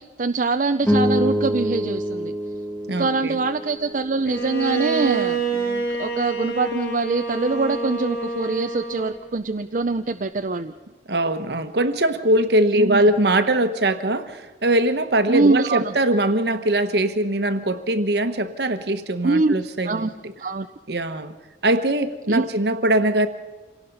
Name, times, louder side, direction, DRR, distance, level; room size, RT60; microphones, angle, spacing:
voice 1, 0.0-2.3 3.0-10.7 12.8-13.0 15.3-15.9 19.2-19.5 19.8-20.1 20.4-20.7 22.3-22.4, right 3 dB, 45° right, 7 dB, 0.6 m, -23 dB
sound 1, 0.8-5.3, equal, 10° left, 1.6 m, -26 dB
voice 2, 2.9-3.4 11.1-20.3 20.9-21.3 21.6-23.3, right 1 dB, 60° right, 9 dB, 1.2 m, -21 dB
Bowed string instrument, 4.3-9.3, right 4 dB, 65° left, 4.0 m, -27 dB
27.0 x 18.0 x 5.5 m, 1.2 s
head